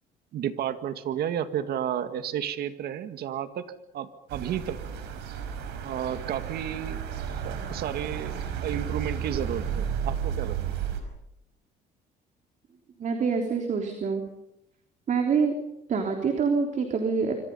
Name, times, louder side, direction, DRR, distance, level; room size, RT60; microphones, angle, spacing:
voice 1, 0.3-3.6 3.9-4.8 5.8-7.0 7.3-10.6, right 10 dB, 70° right, 9 dB, 1.9 m, -32 dB
sound 1, 4.3-11.0, right 8 dB, 90° right, 5.0 m, -33 dB
voice 2, 13.0-14.2 15.1-15.5 15.9-17.3, right 5 dB, 50° right, 3 dB, 3.6 m, -26 dB
26.5 x 25.5 x 5.6 m, 0.83 s
cardioid pair, 110°, 17 cm